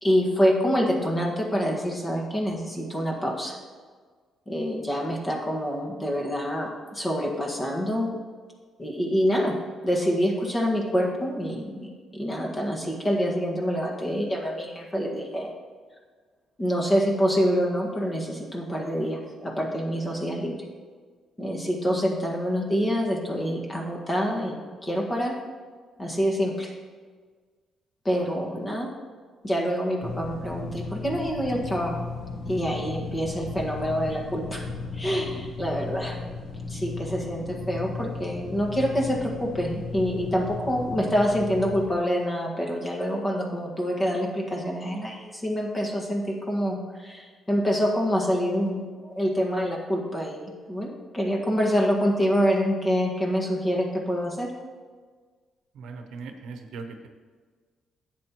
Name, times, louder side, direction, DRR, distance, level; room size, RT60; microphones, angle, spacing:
voice 1, 0.0-3.6 4.5-8.2 8.8-9.5 9.8-15.5 16.6-20.7 21.4-25.3 26.0-26.7 28.0-28.9 29.4-32.1 32.5-34.6 34.9-36.2 36.7-54.5, equal, 25° left, 0 dB, 1.7 m, -26 dB
sound 1, 30.0-41.9, left 3 dB, 65° left, 1.1 m, -35 dB
voice 2, 55.7-57.1, right 4 dB, 80° right, 5 dB, 0.8 m, -39 dB
10.5 x 7.7 x 3.0 m, 1.6 s
cardioid pair, 90°, 0 cm